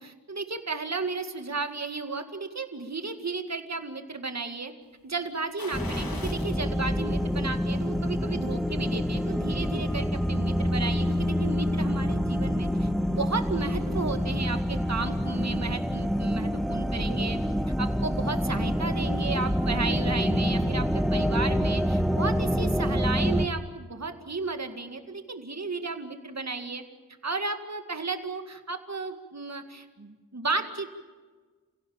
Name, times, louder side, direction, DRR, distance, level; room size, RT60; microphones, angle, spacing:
voice 1, 0.0-4.7 5.0-17.4 17.8-26.8 27.2-30.9, right 3 dB, 50° right, 7 dB, 2.1 m, -33 dB
sound 1, 5.6-6.6 7.1-7.2 8.7-9.5 9.8-9.9, left 3 dB, 80° left, 2.5 m, -42 dB
sound 2, 5.7-23.5, equal, ahead, 1.3 m, -27 dB
29.5 x 16.5 x 8.9 m, 1.4 s
wide cardioid pair, 60°, 34 cm